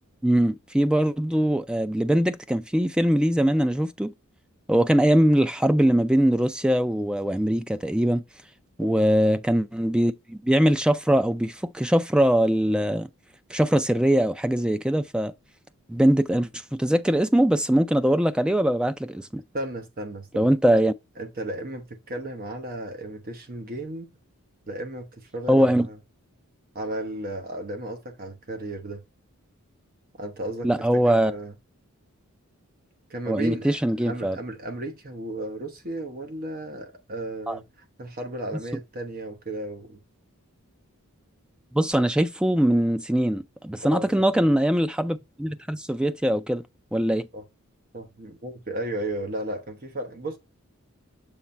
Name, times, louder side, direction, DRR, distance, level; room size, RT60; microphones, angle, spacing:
voice 1, 0.2-4.1 4.7-8.2 8.8-13.1 13.5-15.3 15.9-19.4 20.3-20.9 25.5-25.9 30.6-31.3 33.3-34.4 37.5-37.6 41.7-46.6 46.9-47.3, right 1 dB, 5° right, 0.3 m, -22 dB
voice 2, 19.5-20.5 21.2-24.1 24.7-26.0 26.7-29.0 30.2-31.5 33.1-40.0 43.8-44.3 47.3-47.4 47.9-50.4, right 1 dB, 40° right, 0.9 m, -34 dB
7.2 x 3.1 x 4.2 m
head